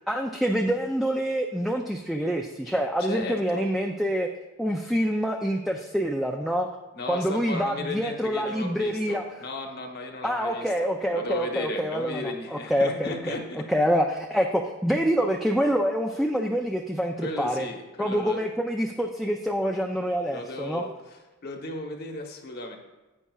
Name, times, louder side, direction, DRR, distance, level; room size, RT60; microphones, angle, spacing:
voice 1, 0.1-4.3 4.6-6.7 7.1-9.2 10.2-12.2 12.7-13.4 13.7-17.7 18.0-20.8, equal, ahead, 1 dB, 0.4 m, -26 dB
voice 2, 3.0-3.7 6.9-13.7 17.2-18.4 20.3-22.8, left 2 dB, 50° left, 3 dB, 1.1 m, -35 dB
11.0 x 8.5 x 2.3 m, 1.1 s
head